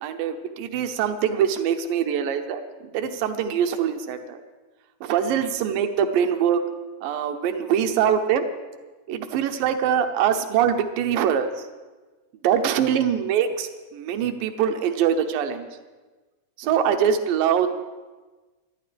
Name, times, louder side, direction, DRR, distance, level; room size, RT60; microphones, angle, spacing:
voice 1, 0.0-2.6 2.9-4.4 5.0-6.6 7.0-8.5 9.1-11.6 12.4-15.7 16.6-17.7, right 8 dB, 85° right, 7 dB, 2.6 m, -23 dB
24.0 x 12.0 x 3.4 m, 1.3 s
omnidirectional pair, 3.9 m